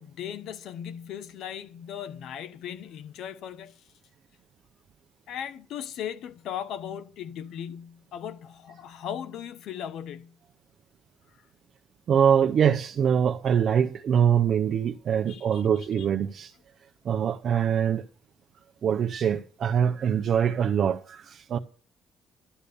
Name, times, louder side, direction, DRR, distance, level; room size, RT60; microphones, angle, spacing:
voice 1, 0.0-3.7 5.3-10.3 15.2-15.6 16.0-16.1, left 9 dB, 75° left, 0.9 m, -38 dB
voice 2, 12.1-16.5 17.0-18.1 18.8-21.6, right 8 dB, 55° right, 0.6 m, -24 dB
12.5 x 6.9 x 6.9 m
cardioid pair, 120°, 0 cm